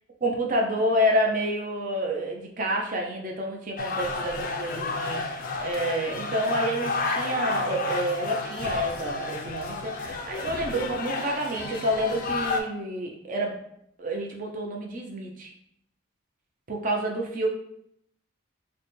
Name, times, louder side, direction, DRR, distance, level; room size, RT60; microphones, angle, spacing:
voice 1, 0.2-13.6 14.0-15.5 16.7-17.5, equal, 40° right, 1 dB, 0.5 m, -28 dB
sound 1, 3.8-12.6, left 3 dB, 40° left, 0.3 m, -31 dB
3.3 x 2.1 x 4.2 m, 0.73 s
head